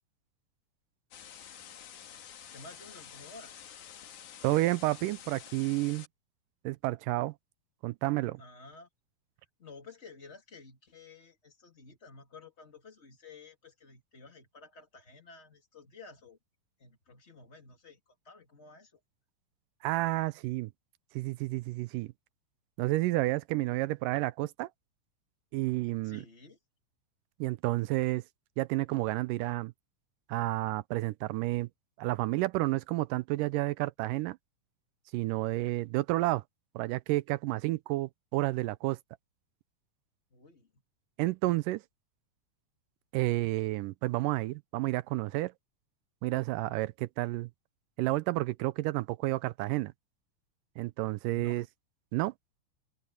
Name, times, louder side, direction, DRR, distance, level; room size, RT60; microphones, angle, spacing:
sound 1, 1.1-6.1, left 9 dB, 65° left, 3.0 m, -49 dB
voice 1, 2.5-3.7 8.4-8.9 9.6-16.4 16.8-19.0 26.0-26.6 40.3-40.8 51.3-51.6, left 3 dB, 20° left, 2.8 m, -52 dB
voice 2, 4.4-6.1 6.6-7.3 7.8-8.4 19.8-20.7 21.2-22.1 22.8-24.7 25.5-26.2 27.4-28.2 28.6-29.7 30.3-31.7 32.0-34.4 35.1-36.4 36.8-39.0 41.2-41.8 43.1-45.5 46.2-47.5 48.0-49.9 50.8-51.6 52.1-52.3, right 19 dB, 80° right, 2.1 m, -30 dB
open air
omnidirectional pair, 3.9 m